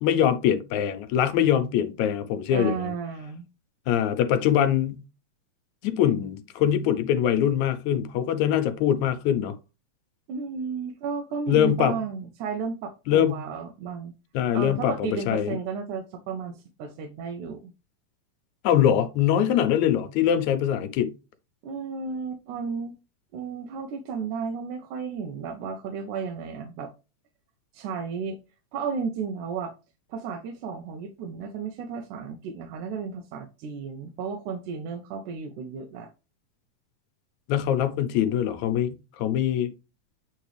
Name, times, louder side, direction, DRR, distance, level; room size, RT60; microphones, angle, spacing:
voice 1, 0.0-2.9 3.9-5.0 5.8-9.5 11.5-12.0 13.1-13.5 14.3-15.6 18.6-21.1 37.5-39.7, left 10 dB, 80° left, 2.1 m, -23 dB
voice 2, 2.5-3.4 10.3-14.1 14.5-17.7 21.6-22.9 23.3-26.9 27.7-28.4 28.7-29.7 30.1-36.1, right 5 dB, 85° right, 2.3 m, -33 dB
8.7 x 3.9 x 3.3 m
omnidirectional pair, 3.4 m